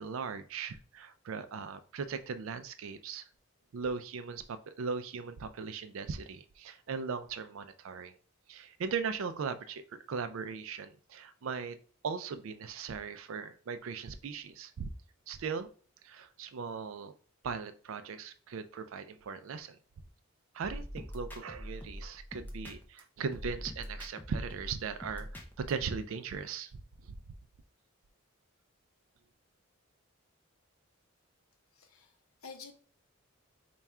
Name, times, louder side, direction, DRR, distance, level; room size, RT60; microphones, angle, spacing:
voice 1, 0.0-3.3 3.7-8.1 8.5-11.8 12.0-14.9 15.3-15.7 16.0-17.1 17.4-19.8 20.5-26.7 27.0-27.2, right 5 dB, 65° right, 11 dB, 0.4 m, -38 dB
sound 1, 20.6-23.0 23.3-25.7, equal, 10° left, 0.5 m, -43 dB
voice 2, 31.7-32.7, left 5 dB, 70° left, 5 dB, 0.7 m, -50 dB
3.5 x 2.3 x 4.2 m, 0.42 s
head